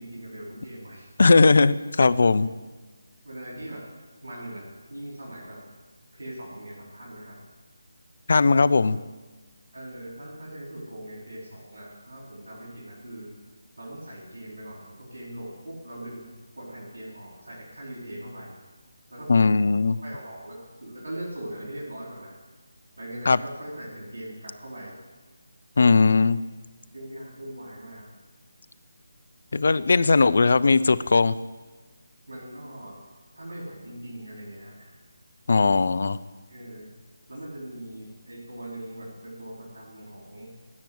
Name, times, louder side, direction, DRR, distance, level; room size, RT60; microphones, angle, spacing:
voice 1, 0.0-1.1 2.4-2.5 3.2-3.8 4.2-5.6 6.1-7.4 9.7-13.3 13.8-16.3 16.5-18.6 19.1-19.5 20.0-22.4 23.0-24.9 26.9-28.0 32.3-33.0 33.3-35.0 36.5-36.9 37.3-40.5, right 1 dB, 65° right, -6 dB, 4.7 m, -40 dB
voice 2, 1.2-2.5 8.3-9.0 19.3-20.0 23.3-23.4 25.8-26.4 29.5-31.3 35.5-36.2, left 4 dB, 55° left, 15 dB, 0.5 m, -18 dB
17.0 x 6.0 x 8.0 m, 1.3 s
figure-of-eight pair, 155°, 0 cm